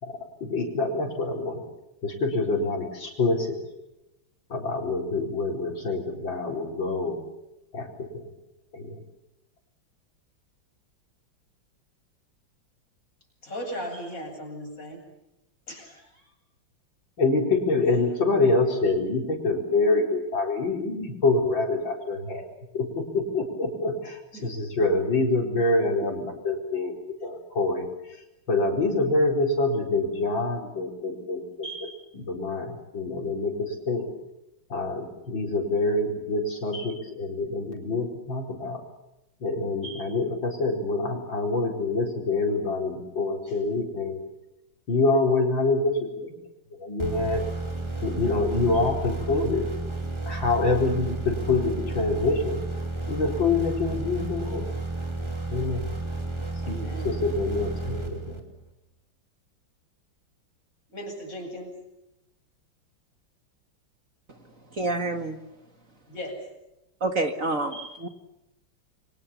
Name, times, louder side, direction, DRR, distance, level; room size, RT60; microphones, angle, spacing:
voice 1, 0.0-1.6 2.0-3.6 4.5-7.2 7.7-8.3 8.7-9.0 17.2-22.5 22.7-26.9 27.2-31.7 32.1-34.1 34.7-38.8 39.4-44.2 44.9-46.3 46.7-47.4 48.0-49.7 50.3-52.6 53.1-54.7 55.5-55.9 56.7-56.8 57.0-58.4, left 3 dB, 75° left, 2 dB, 5.2 m, -26 dB
voice 2, 13.4-15.0 15.7-16.3 24.3-24.5 26.0-26.1 31.6-32.0 36.7-37.0 39.8-40.1 56.6-57.1 60.9-61.8 66.1-66.5 67.7-67.9, equal, 45° left, 2 dB, 8.6 m, -37 dB
sound 1, 47.0-58.7, right 2 dB, 15° right, 2.8 m, -32 dB
voice 3, 64.8-65.4 67.0-67.7 68.0-68.1, right 2 dB, 45° right, 6 dB, 2.1 m, -27 dB
29.5 x 24.0 x 7.1 m, 0.91 s
omnidirectional pair, 2.1 m